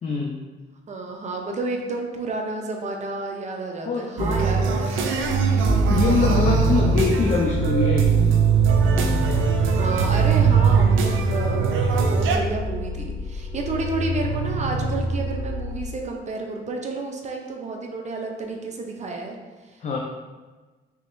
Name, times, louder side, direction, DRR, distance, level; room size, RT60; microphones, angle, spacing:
voice 1, 0.0-0.4 3.8-4.5 5.9-8.4 19.8-20.0, left 4 dB, 40° left, -2 dB, 0.4 m, -24 dB
voice 2, 0.9-5.0 6.2-6.4 9.6-11.7 12.0-19.4 19.7-20.0, right 3 dB, 35° right, 2 dB, 0.6 m, -30 dB
sound 1, 4.2-12.4, right 6 dB, 80° right, 0.4 m, -20 dB
sound 2, 5.2-15.9, equal, 55° left, 1.0 m, -28 dB
3.5 x 2.9 x 2.6 m, 1.3 s
cardioid pair, 90°, 20 cm